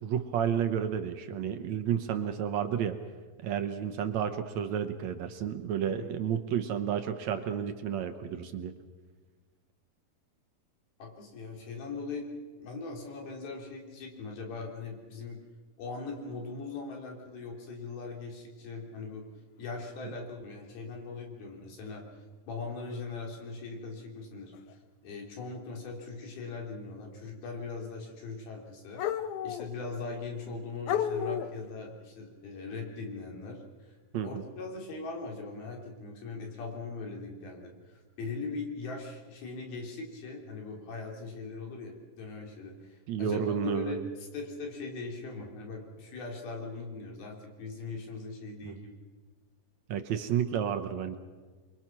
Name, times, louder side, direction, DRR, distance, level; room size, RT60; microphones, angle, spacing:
voice 1, 0.0-3.0 3.4-8.7 34.1-34.4 43.1-44.0 48.7-48.8 49.9-51.2, right 8 dB, 70° right, 8 dB, 1.8 m, -31 dB
voice 2, 5.9-6.2 11.0-12.3 12.6-15.4 15.8-19.3 19.6-24.5 25.0-29.0 29.4-49.0, left 3 dB, 90° left, 0 dB, 5.3 m, -40 dB
sound 1, 21.9-22.0 23.4-23.5 24.5-24.7 27.2-27.3 29.0-29.8 30.4-30.5 30.9-31.7, left 9 dB, 70° left, 2.1 m, -32 dB
28.5 x 22.5 x 6.1 m, 1.4 s
omnidirectional pair, 4.2 m